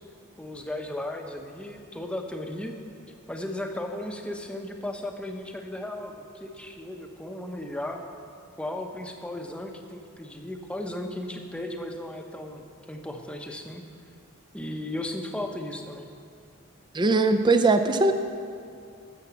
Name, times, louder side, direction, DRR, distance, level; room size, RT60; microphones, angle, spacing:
voice 1, 0.4-2.8 3.3-8.0 8.6-13.8 14.5-16.1, left 1 dB, 5° left, 3 dB, 0.8 m, -35 dB
voice 2, 16.9-18.1, right 3 dB, 20° right, 8 dB, 0.5 m, -20 dB
12.5 x 7.4 x 7.1 m, 2.4 s
head